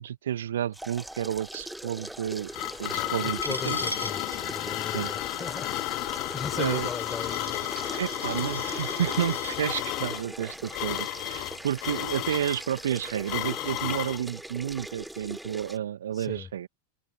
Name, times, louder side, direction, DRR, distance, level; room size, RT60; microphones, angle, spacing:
voice 1, 0.0-2.5 2.8-3.4 3.7-3.8 4.9-5.1 6.6-6.9 8.0-16.7, right 10 dB, 65° right, 1.8 m, -31 dB
sound 1, 0.7-15.8, right 1 dB, 5° right, 1.3 m, -41 dB
sound 2, 2.1-14.2, left 25 dB, 40° left, 0.6 m, -33 dB
Coin (dropping), 3.4-9.6, equal, 90° left, 3.9 m, -40 dB
voice 2, 3.4-7.8 16.1-16.5, left 6 dB, 15° left, 6.3 m, -38 dB
figure-of-eight pair, 90°, 0 cm